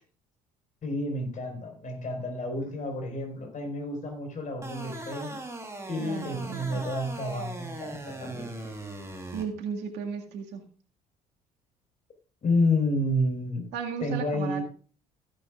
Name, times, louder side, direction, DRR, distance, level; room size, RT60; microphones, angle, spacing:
voice 1, 0.8-5.4 5.9-8.5 12.4-13.7 14.0-14.6, left 1 dB, 40° left, 3 dB, 5.0 m, -30 dB
sound 1, 4.6-9.4, right 2 dB, 15° right, 3.5 m, -39 dB
voice 2, 6.0-6.8 9.3-10.6 13.7-14.6, right 6 dB, 65° right, 3 dB, 2.0 m, -35 dB
16.5 x 10.0 x 2.5 m, 0.38 s
hypercardioid pair, 55°, 19 cm